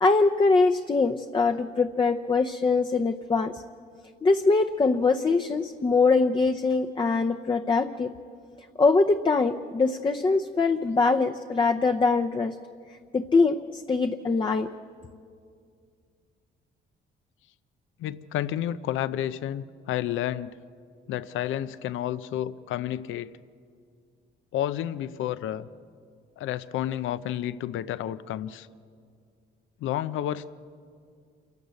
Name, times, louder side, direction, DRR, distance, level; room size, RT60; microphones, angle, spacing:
voice 1, 0.0-3.6 4.2-8.1 8.8-12.5 13.1-14.7, left 4 dB, 25° left, 5 dB, 0.7 m, -23 dB
voice 2, 18.0-20.6 21.1-23.3 24.5-25.7 26.4-28.7 29.8-30.5, left 11 dB, 80° left, 15 dB, 0.6 m, -30 dB
27.5 x 12.0 x 8.3 m, 2.2 s
cardioid pair, 90°, 20 cm